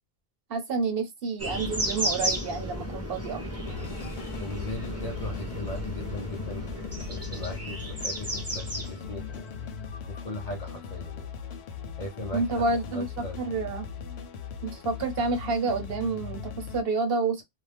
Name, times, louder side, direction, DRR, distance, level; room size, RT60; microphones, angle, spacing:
voice 1, 0.5-3.4 12.3-13.1 13.4-13.9 14.6-17.4, right 3 dB, 65° right, 1.0 m, -29 dB
sound 1, 1.4-9.9, equal, 15° right, 0.7 m, -34 dB
sound 2, 3.7-16.8, left 7 dB, 90° left, 0.9 m, -39 dB
voice 2, 4.4-9.5 10.1-11.3 12.0-13.5, left 1 dB, 45° left, 0.6 m, -39 dB
2.5 x 2.1 x 3.3 m
omnidirectional pair, 1.1 m